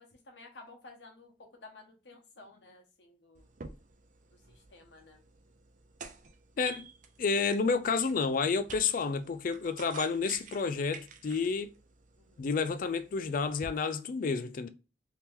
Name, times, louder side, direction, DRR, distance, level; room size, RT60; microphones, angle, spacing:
voice 1, 0.0-3.5 4.3-5.2 12.2-12.4, left 3 dB, 90° left, 1.0 m, -54 dB
sound 1, 3.4-13.7, right 5 dB, 45° right, 0.4 m, -50 dB
voice 2, 7.2-11.7 12.4-14.7, left 5 dB, 50° left, 0.4 m, -30 dB
2.9 x 2.8 x 3.5 m
head